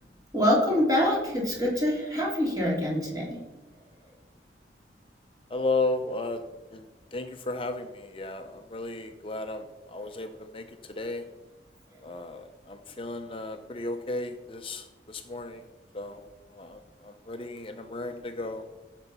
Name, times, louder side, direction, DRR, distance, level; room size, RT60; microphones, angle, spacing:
voice 1, 0.3-3.4, left 1 dB, 20° right, -3 dB, 3.4 m, -25 dB
voice 2, 5.5-6.4 6.7-11.3 12.0-15.7 15.9-16.2 16.5-18.7, left 2 dB, 30° left, 6 dB, 0.7 m, -34 dB
15.5 x 7.0 x 5.6 m, 1.1 s
head